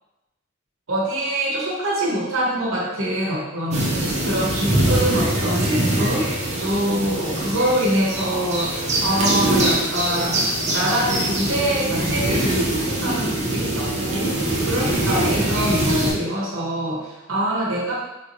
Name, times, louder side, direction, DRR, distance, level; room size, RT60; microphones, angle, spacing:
voice 1, 0.9-10.4 10.7-17.9, right 1 dB, 70° right, -4 dB, 0.9 m, -24 dB
sound 1, 3.7-16.1, right 1 dB, 35° right, 0.6 m, -23 dB
3.6 x 2.9 x 2.5 m, 0.99 s
head